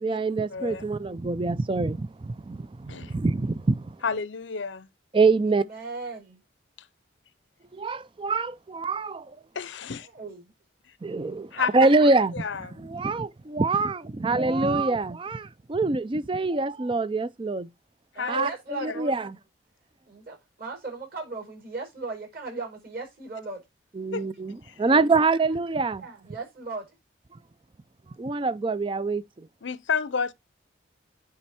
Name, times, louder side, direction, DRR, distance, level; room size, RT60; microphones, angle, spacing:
voice 1, 0.0-4.0 5.1-5.6 7.7-9.4 11.0-12.3 12.8-17.7 18.3-18.5 18.8-19.4 24.0-26.0 28.2-29.5, right 3 dB, 25° right, 0.4 m, -25 dB
voice 2, 0.5-0.8 2.9-3.1 4.0-4.9 9.5-10.1 11.5-11.9 12.3-12.8 18.2-19.0 24.1-24.2 24.6-24.7 29.6-30.3, left 5 dB, 70° left, 0.7 m, -31 dB
voice 3, 5.4-6.4 10.1-10.5 11.6-12.1 18.1-19.3 20.1-23.6 24.9-25.1 26.0-26.9, right 3 dB, 50° right, 4.8 m, -37 dB
9.3 x 4.3 x 4.3 m
head